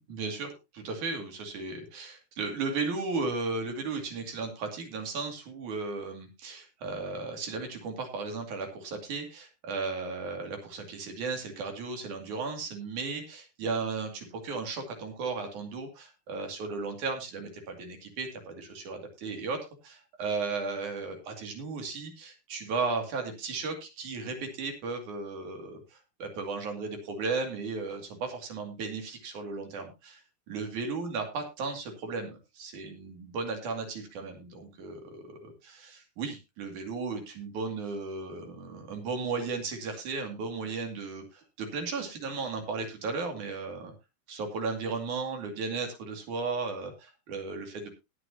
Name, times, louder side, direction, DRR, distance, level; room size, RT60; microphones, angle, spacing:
voice 1, 0.1-43.9 44.3-47.9, right 4 dB, 55° right, 4 dB, 3.6 m, -35 dB
19.5 x 8.0 x 2.8 m, 0.25 s
omnidirectional pair, 4.4 m